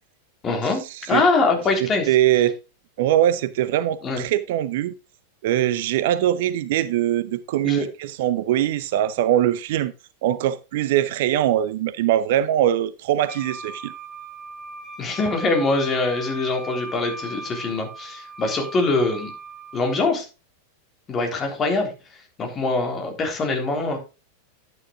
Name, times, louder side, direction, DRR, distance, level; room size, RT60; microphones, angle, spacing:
voice 1, 0.4-0.8 1.1-2.1 4.0-4.2 7.6-7.9 15.0-19.3 19.7-20.3 21.1-21.9 22.4-24.0, left 3 dB, 25° left, 3.6 m, -23 dB
voice 2, 1.8-2.6 3.0-4.9 5.4-9.9 10.2-13.9, right 12 dB, 50° right, 0.6 m, -22 dB
Wind instrument woodwind instrument, 13.3-20.0, right 2 dB, 5° right, 4.8 m, -38 dB
11.0 x 9.4 x 2.5 m
figure-of-eight pair, 90°, 0 cm